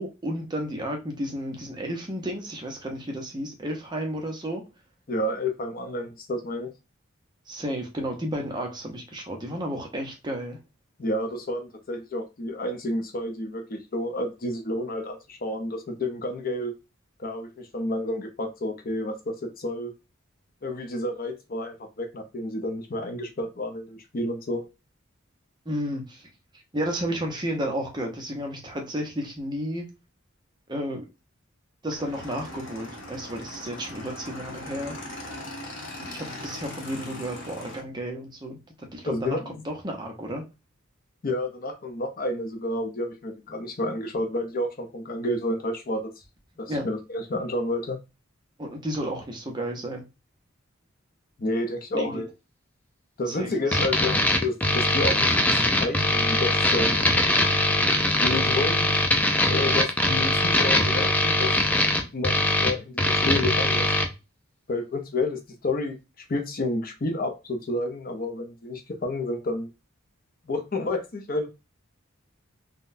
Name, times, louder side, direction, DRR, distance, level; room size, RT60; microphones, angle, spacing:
voice 1, 0.0-4.6 7.5-10.6 25.7-26.3 26.7-29.9 30.7-31.0 31.8-34.9 36.0-40.4 46.7-46.9 48.6-50.0 51.9-52.2 53.3-53.8, equal, 20° right, 0.7 m, -32 dB
voice 2, 5.1-6.7 11.0-16.7 17.2-19.9 20.6-24.6 39.1-39.4 41.2-46.1 46.6-48.0 51.4-52.3 53.2-54.1 54.4-55.3 55.8-57.1 58.1-59.0 59.4-61.5 62.1-63.9 64.7-66.0 66.3-69.7 70.5-71.5, left 1 dB, 45° left, 0.6 m, -30 dB
Motorcycle / Engine, 32.0-37.8, left 1 dB, 70° left, 1.1 m, -39 dB
sound 1, 53.7-64.1, left 1 dB, 10° left, 0.4 m, -22 dB
3.7 x 2.2 x 2.5 m
head